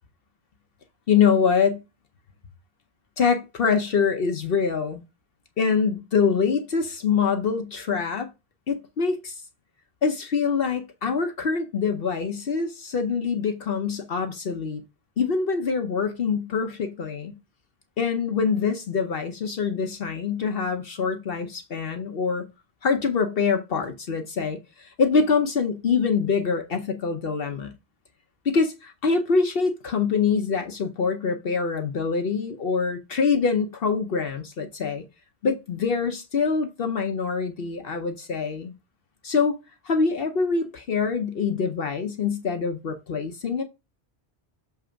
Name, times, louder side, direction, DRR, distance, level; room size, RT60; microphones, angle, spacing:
voice 1, 1.1-1.8 3.2-5.0 5.6-8.3 8.7-9.4 10.0-14.8 15.2-17.3 18.0-22.5 22.8-27.8 28.4-35.0 35.4-38.7 39.2-39.6 39.8-43.6, left 5 dB, 65° left, 1.0 m, -24 dB
7.0 x 3.3 x 5.0 m
omnidirectional pair, 1.1 m